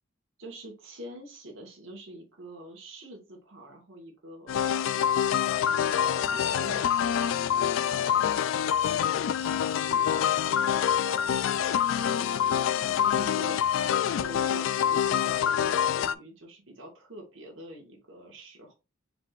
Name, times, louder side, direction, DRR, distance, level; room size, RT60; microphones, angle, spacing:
voice 1, 0.4-4.6 5.7-7.2 8.8-9.1 13.2-13.7 14.2-18.7, right 1 dB, 70° right, 1.7 m, -45 dB
sound 1, 4.5-16.1, left 9 dB, 70° left, 0.3 m, -26 dB
voice 2, 5.9-6.5 7.8-8.4 8.8-12.3 12.7-13.7, right 1 dB, 30° right, 1.7 m, -47 dB
4.8 x 3.5 x 2.4 m
head